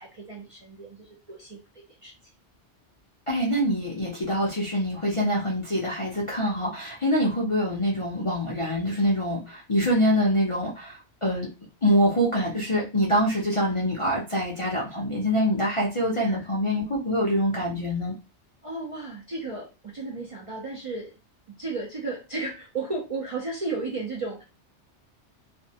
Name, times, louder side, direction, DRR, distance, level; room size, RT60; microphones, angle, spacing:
voice 1, 0.0-1.6 2.0-2.1 16.1-16.5 18.6-21.1 21.5-24.4, right 3 dB, 40° right, -3 dB, 0.5 m, -34 dB
voice 2, 3.3-11.5 11.8-18.1, equal, 40° left, -4 dB, 0.5 m, -25 dB
2.6 x 2.1 x 2.7 m, 0.29 s
omnidirectional pair, 1.2 m